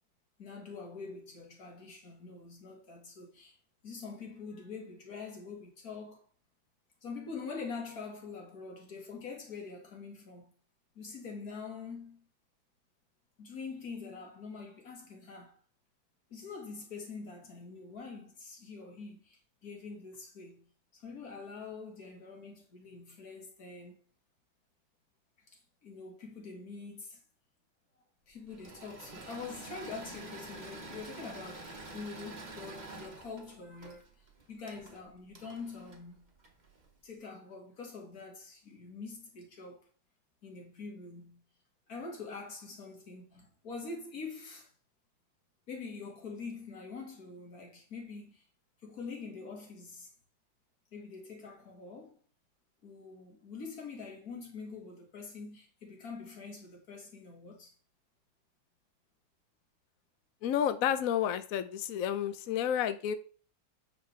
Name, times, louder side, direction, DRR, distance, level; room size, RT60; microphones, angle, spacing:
voice 1, 0.4-3.6 3.8-6.2 7.0-10.5 11.0-12.3 13.4-15.6 16.3-20.6 20.9-24.0 25.8-27.2 28.3-34.1 34.5-36.3 37.0-39.9 40.4-41.4 41.9-44.7 45.7-48.4 48.8-50.1 50.9-52.2 52.8-57.7, left 4 dB, 50° left, 2.3 m, -45 dB
Engine / Mechanisms, 28.5-36.9, right 2 dB, 25° right, 1.2 m, -48 dB
voice 2, 60.4-63.1, left 9 dB, 75° left, 0.8 m, -30 dB
8.7 x 5.5 x 3.3 m
omnidirectional pair, 2.1 m